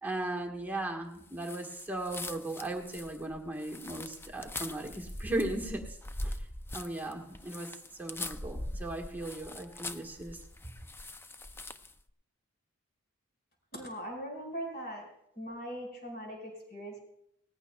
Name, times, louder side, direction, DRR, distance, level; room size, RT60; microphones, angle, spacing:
voice 1, 0.0-5.8 6.2-6.4 6.7-7.7 8.0-10.4, right 2 dB, 10° right, 0 dB, 1.4 m, -37 dB
sound 1, 1.4-12.0, left 1 dB, 10° left, 0.4 m, -42 dB
voice 2, 13.7-15.1 15.3-17.0, equal, 45° left, 0 dB, 5.1 m, -40 dB
19.0 x 14.5 x 2.3 m, 0.74 s
head